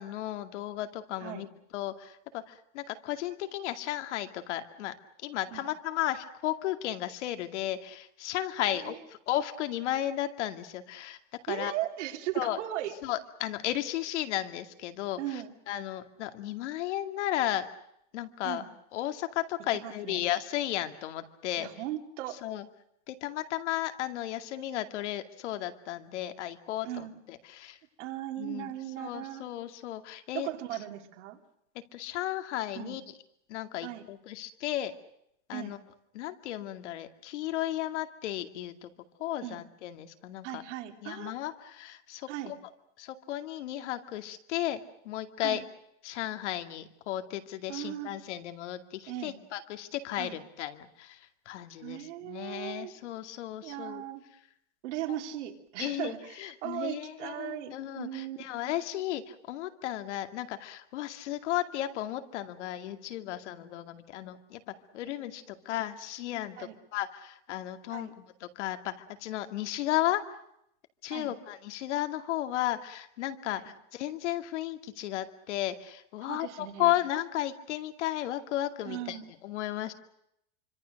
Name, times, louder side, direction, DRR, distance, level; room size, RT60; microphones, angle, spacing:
voice 1, 0.0-1.5 1.7-4.9 5.2-11.2 11.5-11.7 12.3-12.6 13.0-15.2 15.7-17.7 18.1-18.6 18.9-21.7 22.4-22.6 23.1-27.8 28.4-30.5 31.9-33.0 33.5-34.9 35.5-35.8 36.1-38.9 39.2-40.6 41.0-42.3 43.0-45.6 46.0-51.2 51.5-54.0 55.8-68.9 69.2-70.2 71.0-73.6 73.9-79.2 79.4-79.9, left 13 dB, 80° left, 7 dB, 2.4 m, -34 dB
voice 2, 11.5-13.0 15.2-15.5 18.4-18.7 19.7-20.2 21.6-22.4 26.8-27.2 28.0-29.5 30.3-31.4 32.7-33.0 33.8-34.1 35.5-35.8 39.4-39.6 40.4-41.4 42.3-42.6 45.4-45.6 47.7-48.1 49.1-49.4 50.2-50.4 51.8-52.9 53.6-54.3 54.8-58.7 66.6-66.7 67.9-68.1 71.1-71.3 73.5-73.6 76.2-77.0 78.8-79.3, right 13 dB, 85° right, 4 dB, 3.3 m, -38 dB
26.0 x 25.5 x 6.5 m, 0.77 s
supercardioid pair, 170°, 35 cm